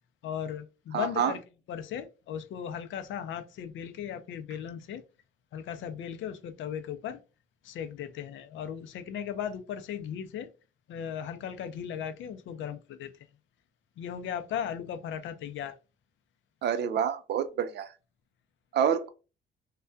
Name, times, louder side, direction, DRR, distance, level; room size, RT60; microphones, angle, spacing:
voice 1, 0.2-1.4 1.7-5.0 5.5-7.2 7.6-10.5 10.9-13.1 14.0-15.7, left 8 dB, 75° left, 0.5 m, -37 dB
voice 2, 0.9-1.3 16.6-17.9 18.7-19.1, right 8 dB, 60° right, 0.4 m, -27 dB
2.2 x 2.2 x 2.5 m
cardioid pair, 90°, 20 cm